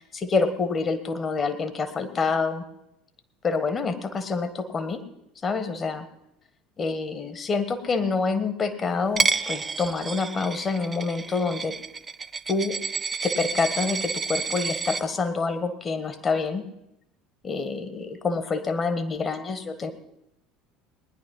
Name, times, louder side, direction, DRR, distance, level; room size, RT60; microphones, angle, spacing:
voice 1, 0.0-2.6 3.4-5.0 5.4-6.1 6.8-11.7 12.5-12.8 13.2-16.6 17.4-19.9, left 4 dB, 30° left, 9 dB, 1.5 m, -27 dB
Coin (dropping), 9.2-15.0, right 4 dB, 25° right, 0.6 m, -29 dB
19.0 x 10.5 x 5.5 m, 0.82 s
figure-of-eight pair, 65°, 0 cm